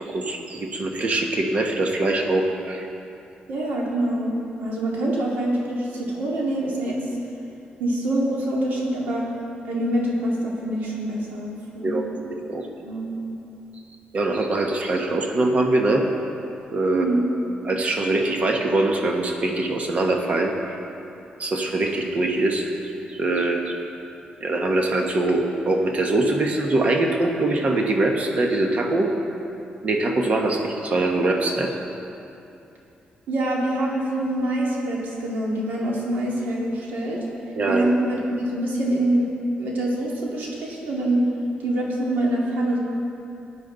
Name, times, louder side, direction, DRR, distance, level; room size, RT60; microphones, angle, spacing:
voice 1, 0.0-2.9 11.8-12.7 14.1-16.0 16.7-17.0 17.6-20.8 21.4-22.7 23.1-23.8 24.4-29.1 29.8-31.7 37.5-37.8, right 2 dB, 45° right, 2 dB, 1.3 m, -23 dB
voice 2, 3.5-7.0 7.8-9.3 9.6-12.0 12.8-13.2 16.9-17.2 33.3-37.2 37.7-39.3 39.6-41.2 41.6-42.8, right 1 dB, 80° right, -3 dB, 2.5 m, -25 dB
15.5 x 9.6 x 4.0 m, 2.8 s
cardioid pair, 105°, 3 cm